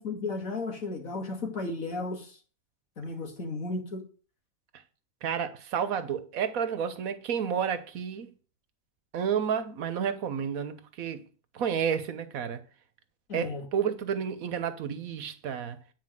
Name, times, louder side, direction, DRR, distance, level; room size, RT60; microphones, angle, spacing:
voice 1, 0.0-2.4 3.0-4.0 13.3-13.7, left 3 dB, 75° left, 2.7 m, -34 dB
voice 2, 5.2-8.3 9.1-11.2 11.5-12.6 13.3-15.8, right 7 dB, 85° right, 1.4 m, -31 dB
9.6 x 4.7 x 7.6 m
omnidirectional pair, 1.4 m